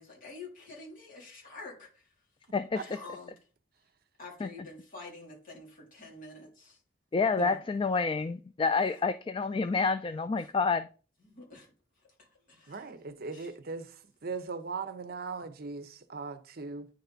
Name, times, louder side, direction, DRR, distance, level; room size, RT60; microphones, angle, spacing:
voice 1, 0.0-2.1 2.8-3.3 4.2-6.8 8.8-9.1 10.4-10.5 11.2-11.7 12.2-12.9 13.3-13.5, left 3 dB, 50° left, 3.3 m, -48 dB
voice 2, 2.5-2.8 4.4-4.5 7.1-10.9, left 4 dB, 25° left, 0.3 m, -28 dB
voice 3, 12.7-13.9 14.2-16.9, right 4 dB, 55° right, 0.8 m, -39 dB
9.7 x 4.1 x 4.0 m
head